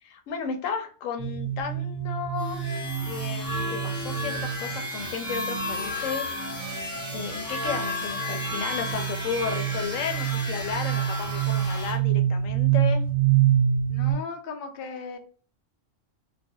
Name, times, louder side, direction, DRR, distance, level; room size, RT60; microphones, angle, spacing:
voice 1, 0.0-2.7 3.0-6.3 7.1-13.0, left 6 dB, 85° left, 5 dB, 1.0 m, -33 dB
sound 1, 1.2-5.1 6.5-14.1, right 10 dB, 65° right, 0.8 m, -27 dB
sound 2, 2.4-12.0, left 1 dB, 30° left, 1.1 m, -33 dB
voice 2, 13.9-15.2, left 5 dB, 60° left, 4 dB, 0.6 m, -37 dB
2.4 x 2.2 x 2.7 m, 0.38 s
omnidirectional pair, 1.3 m